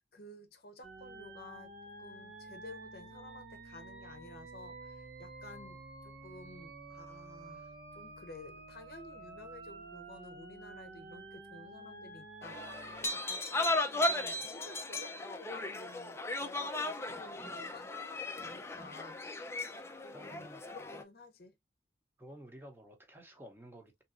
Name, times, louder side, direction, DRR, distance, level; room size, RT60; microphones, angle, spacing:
voice 1, 0.0-1.7 2.0-19.2 20.0-21.5, left 2 dB, 60° left, 0.7 m, -53 dB
sound 1, 0.8-13.1, right 2 dB, 65° right, 0.9 m, -50 dB
sound 2, 12.4-21.0, left 2 dB, 15° left, 0.4 m, -36 dB
voice 2, 20.1-20.6 22.2-24.0, equal, 10° right, 0.8 m, -52 dB
3.6 x 2.8 x 2.4 m
head